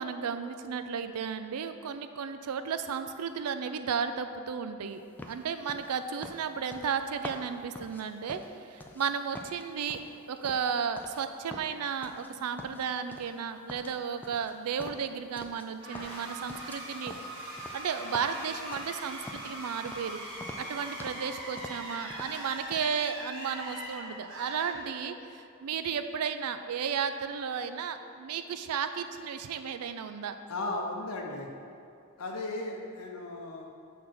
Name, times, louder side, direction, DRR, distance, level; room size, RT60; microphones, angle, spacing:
voice 1, 0.0-5.0 5.3-10.0 10.3-17.1 17.7-20.2 20.6-30.4, right 6 dB, 85° right, 10 dB, 0.4 m, -34 dB
sound 1, 5.2-9.1 9.3-11.2 11.5-12.3 12.6-13.4 13.7-15.7 15.9-19.6 19.9-20.1 20.4-21.3 21.6-22.4 22.7-22.9, left 1 dB, 10° left, 0.3 m, -46 dB
sound 2, 15.8-25.4, right 1 dB, 60° right, 1.5 m, -41 dB
voice 2, 30.5-31.5 32.2-33.7, left 2 dB, 75° left, 0 dB, 0.7 m, -36 dB
6.4 x 3.6 x 6.0 m, 2.4 s
head